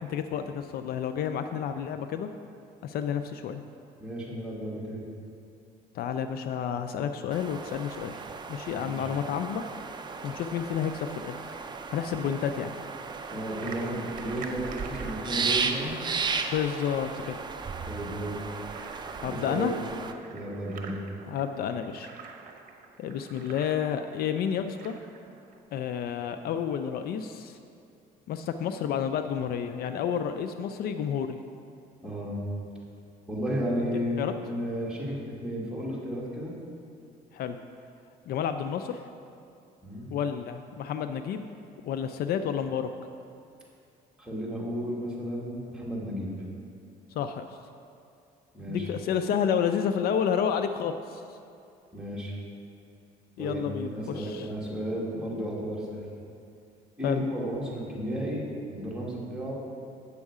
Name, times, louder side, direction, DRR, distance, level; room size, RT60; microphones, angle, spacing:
voice 1, 0.0-2.3 2.8-3.6 5.9-8.2 8.5-9.7 10.2-12.7 16.5-17.4 19.2-19.7 21.3-22.1 23.0-25.0 25.7-27.6 28.3-31.4 34.2-34.3 37.3-37.6 38.3-39.0 40.1-41.4 41.9-42.9 47.2-47.6 48.7-51.2 53.4-54.5 57.0-57.2, left 8 dB, 65° left, 8 dB, 0.4 m, -30 dB
voice 2, 4.0-5.0 8.7-9.1 13.3-16.0 17.8-18.4 19.2-19.8 20.2-21.0 32.0-32.4 33.3-36.5 39.8-40.1 44.2-46.3 48.5-48.9 51.9-52.3 53.4-53.6 53.9-56.0 57.0-59.5, equal, 5° right, -5 dB, 1.9 m, -33 dB
sound 1, 7.3-20.1, right 5 dB, 25° right, 0.5 m, -35 dB
sound 2, 13.3-25.6, right 5 dB, 50° right, 0.9 m, -48 dB
8.3 x 6.3 x 4.8 m, 2.5 s
cardioid pair, 110°, 17 cm